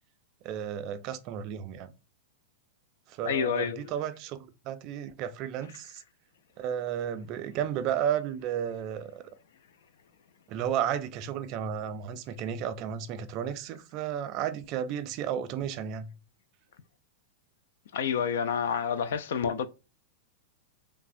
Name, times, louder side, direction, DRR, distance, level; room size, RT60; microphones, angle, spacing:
voice 1, 0.4-1.9 3.2-4.4 4.6-6.0 6.6-9.2 10.5-16.1, right 9 dB, 40° right, 0.3 m, -33 dB
voice 2, 3.2-3.9 17.9-19.7, left 7 dB, 75° left, 0.3 m, -29 dB
3.2 x 2.1 x 2.5 m
hypercardioid pair, 135°, 0 cm